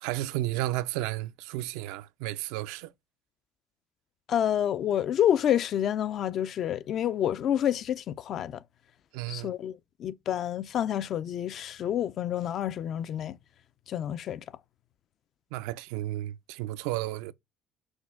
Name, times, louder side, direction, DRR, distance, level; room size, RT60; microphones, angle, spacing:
voice 1, 0.0-2.9 9.1-9.5 15.5-17.3, right 16 dB, 90° right, 0.4 m, -33 dB
voice 2, 4.3-8.6 9.3-13.4 13.9-14.4, left 10 dB, 55° left, 0.4 m, -28 dB
6.3 x 2.2 x 3.5 m
supercardioid pair, 95°, 0 cm